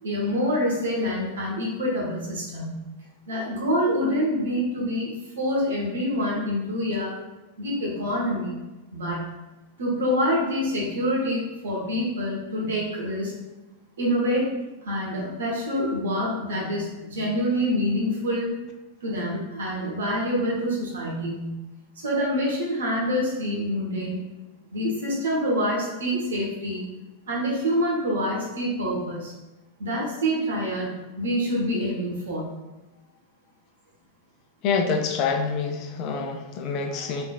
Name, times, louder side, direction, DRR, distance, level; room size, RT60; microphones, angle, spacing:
voice 1, 0.0-2.8 3.3-5.1 5.3-7.1 7.6-8.6 8.9-9.3 9.8-13.3 14.0-14.5 14.8-18.5 19.0-21.6 22.0-24.2 24.7-26.8 27.3-29.3 29.8-32.5, equal, 65° right, -4 dB, 1.2 m, -26 dB
voice 2, 34.6-37.2, left 5 dB, 40° left, 3 dB, 0.5 m, -26 dB
3.7 x 3.3 x 2.4 m, 1.1 s
figure-of-eight pair, 90°, 0 cm